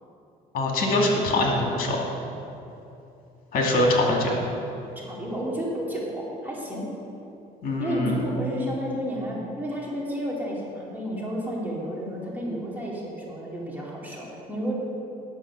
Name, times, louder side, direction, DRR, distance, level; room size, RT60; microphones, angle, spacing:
voice 1, 0.5-2.1 3.5-4.4 7.6-8.4, left 1 dB, 60° left, 0 dB, 2.1 m, -23 dB
voice 2, 5.0-6.9 7.8-14.7, equal, 10° right, -5 dB, 2.6 m, -31 dB
9.8 x 6.6 x 6.0 m, 2.8 s
cardioid pair, 110°, 17 cm